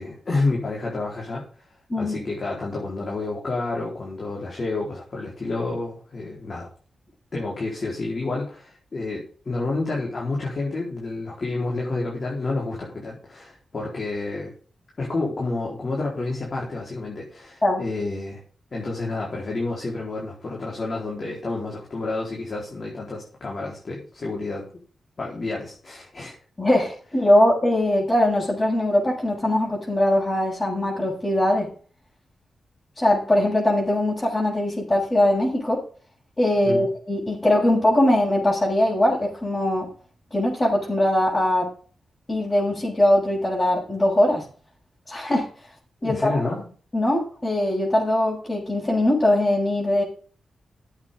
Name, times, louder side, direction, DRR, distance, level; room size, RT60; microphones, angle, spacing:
voice 1, 0.0-1.4 1.9-6.7 7.3-14.5 15.0-18.4 18.7-24.6 25.2-26.3 36.6-36.9 46.0-46.7, left 3 dB, 50° left, -3 dB, 4.3 m, -29 dB
voice 2, 26.6-31.7 33.0-35.8 36.4-39.9 40.3-41.7 42.3-44.4 45.1-45.5 46.0-46.5 46.9-50.0, left 1 dB, 30° left, -6 dB, 6.5 m, -21 dB
14.5 x 8.2 x 3.8 m, 0.41 s
cardioid pair, 50°, 0 cm